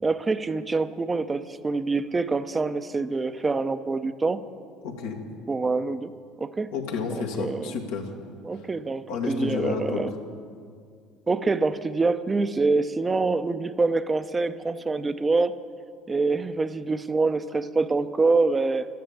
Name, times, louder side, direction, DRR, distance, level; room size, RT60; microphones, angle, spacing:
voice 1, 0.0-4.4 5.5-6.1 6.4-6.7 7.1-7.7 8.4-10.1 11.3-15.6 16.1-18.9, right 3 dB, 25° right, 11 dB, 0.8 m, -25 dB
voice 2, 4.8-5.2 6.7-8.1 9.1-10.0, left 5 dB, 80° left, 0 dB, 2.0 m, -30 dB
12.5 x 10.5 x 8.7 m, 2.2 s
hypercardioid pair, 75°, 0 cm